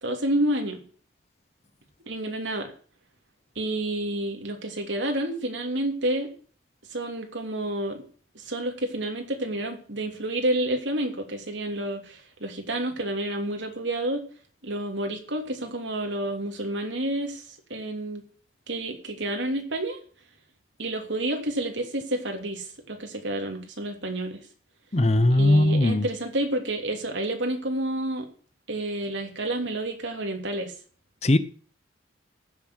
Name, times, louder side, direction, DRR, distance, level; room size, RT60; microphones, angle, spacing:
voice 1, 0.0-0.8 2.1-2.7 3.5-6.3 6.9-8.0 8.3-14.2 14.6-17.4 17.7-18.2 18.7-20.0 20.8-24.4 25.3-28.3 28.7-30.7, right 1 dB, 80° right, 3.0 m, -29 dB
voice 2, 24.9-26.1 31.2-31.4, left 1 dB, 35° left, 0.8 m, -19 dB
15.5 x 7.2 x 6.4 m
head